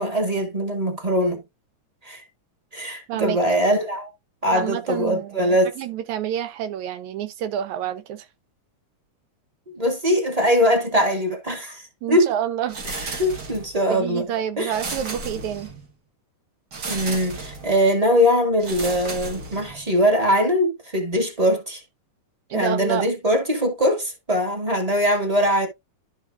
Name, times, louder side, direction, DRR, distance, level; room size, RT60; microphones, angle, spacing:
voice 1, 0.0-1.4 2.0-2.2 2.7-4.1 4.4-5.7 9.7-12.3 12.8-14.3 14.6-14.7 16.9-21.8 22.5-25.7, equal, 15° right, 1.4 m, -22 dB
voice 2, 3.1-3.6 4.5-8.3 12.0-12.8 13.9-15.7 22.5-23.1, right 10 dB, 75° right, 2.1 m, -28 dB
sound 1, 12.7-13.8 14.7-15.9 16.7-17.7 18.6-19.9, right 3 dB, 45° right, 1.6 m, -34 dB
12.5 x 4.8 x 2.4 m
omnidirectional pair, 3.6 m